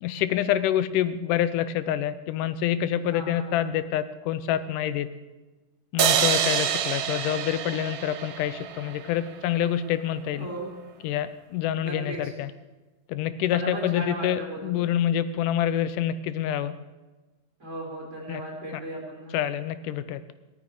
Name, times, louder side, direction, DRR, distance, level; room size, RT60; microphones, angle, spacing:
voice 1, 0.0-5.1 5.9-10.5 11.0-12.5 13.1-16.8 18.3-18.4 19.3-20.3, left 10 dB, 85° left, 14 dB, 2.3 m, -27 dB
voice 2, 3.1-3.7 10.4-10.7 11.8-12.3 13.5-14.8 17.6-19.4, right 1 dB, 20° right, -3 dB, 4.4 m, -36 dB
sound 1, 6.0-9.3, right 9 dB, 90° right, 2.5 m, -26 dB
17.0 x 13.5 x 4.9 m, 1.2 s
omnidirectional pair, 3.6 m